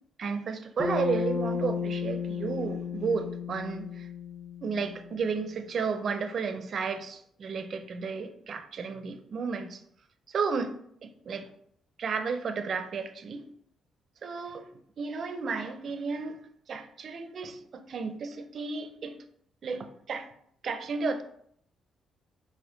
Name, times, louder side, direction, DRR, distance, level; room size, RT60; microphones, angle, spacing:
voice 1, 0.2-4.1 4.6-9.8 10.3-10.7 11.0-11.5 12.0-13.4 14.2-14.6 15.0-16.4 16.7-19.1 19.6-20.3 20.6-21.2, right 5 dB, 55° right, 8 dB, 0.4 m, -33 dB
Bass guitar, 0.8-5.2, left 5 dB, 20° left, 0.8 m, -33 dB
4.3 x 2.4 x 3.8 m, 0.68 s
cardioid pair, 90°, 0 cm